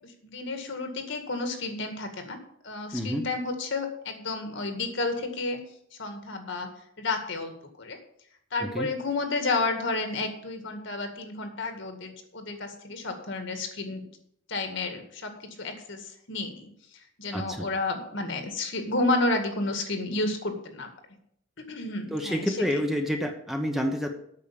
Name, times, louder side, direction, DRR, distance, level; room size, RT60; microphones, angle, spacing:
voice 1, 0.0-2.4 2.6-5.6 6.0-6.7 7.0-8.0 8.5-14.0 14.5-15.3 15.6-16.7 17.2-20.9 21.6-22.8, left 3 dB, 65° left, 5 dB, 2.0 m, -31 dB
voice 2, 2.9-3.2 8.6-8.9 17.3-17.7 22.1-24.1, equal, ahead, 4 dB, 1.0 m, -28 dB
8.7 x 6.5 x 8.5 m, 0.69 s
head